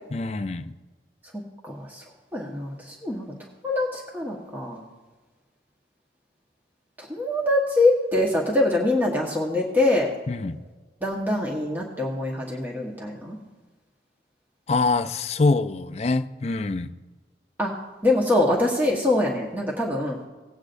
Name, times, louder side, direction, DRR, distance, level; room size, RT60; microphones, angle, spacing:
voice 1, 0.1-0.7 10.3-10.6 14.7-16.9, left 3 dB, 35° left, 9 dB, 0.4 m, -24 dB
voice 2, 1.3-2.0 2.3-3.3 3.6-4.8 7.0-10.1 11.0-13.4 17.6-17.8 18.0-20.3, left 2 dB, 10° right, -3 dB, 1.2 m, -24 dB
18.5 x 8.3 x 2.6 m, 1.3 s
head